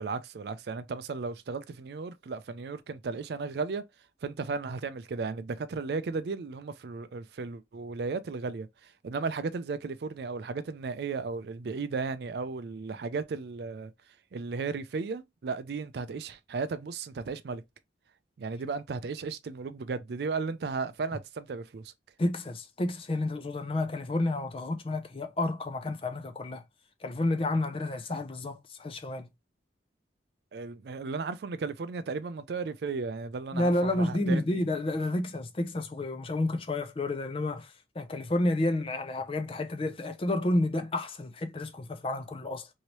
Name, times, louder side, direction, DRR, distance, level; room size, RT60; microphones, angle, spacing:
voice 1, 0.0-3.8 4.2-13.9 14.3-17.6 18.4-21.9 30.5-34.6, right 4 dB, 65° right, 0.4 m, -35 dB
voice 2, 22.2-26.6 27.0-29.3 33.5-42.7, left 1 dB, 30° left, 0.4 m, -30 dB
3.0 x 2.7 x 2.9 m
head